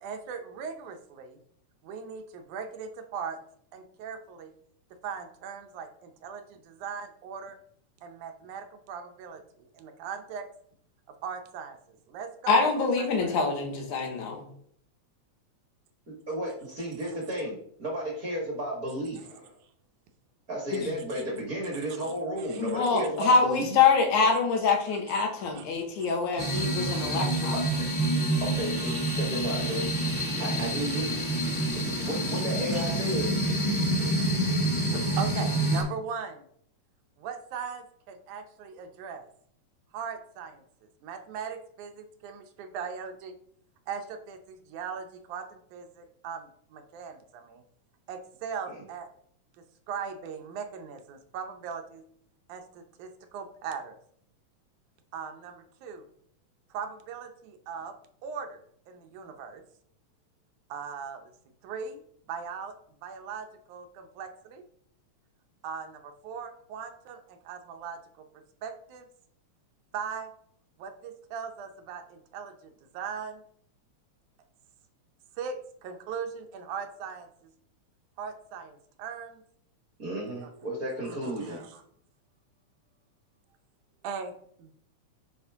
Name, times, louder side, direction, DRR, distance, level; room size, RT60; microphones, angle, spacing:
voice 1, 0.0-1.4 1.8-3.4 3.7-4.5 5.0-7.6 8.0-10.5 11.1-13.4 21.1-21.2 22.0-22.1 22.4-22.6 25.4-25.7 26.0-26.1 26.6-27.2 28.9-29.0 32.3-32.4 32.7-32.8 33.1-33.2 34.9-36.4 37.2-39.3 39.9-40.6 41.0-43.3 43.9-47.6 48.1-49.1 49.6-52.0 52.5-54.0 55.1-56.0 56.7-57.9 58.2-59.6 60.7-61.3 61.6-62.0 62.3-62.7 63.0-64.6 65.6-69.1 69.9-70.3 70.8-73.4 75.4-77.5 78.2-79.4 80.4-80.5 81.0-81.8 84.0-84.3 84.6-84.7, right 6 dB, 85° right, 6 dB, 2.2 m, -39 dB
voice 2, 12.5-14.4 20.7-20.9 22.6-27.6, left 4 dB, 80° left, 2 dB, 2.7 m, -25 dB
voice 3, 16.8-19.5 20.5-23.8 27.5-27.6 28.4-29.8 30.4-31.1 31.7-33.3 48.7-48.8 80.0-81.6, right 1 dB, 40° right, -1 dB, 1.3 m, -33 dB
sound 1, 26.4-35.8, right 1 dB, 10° left, 1.9 m, -27 dB
8.2 x 4.3 x 3.5 m, 0.65 s
omnidirectional pair, 3.4 m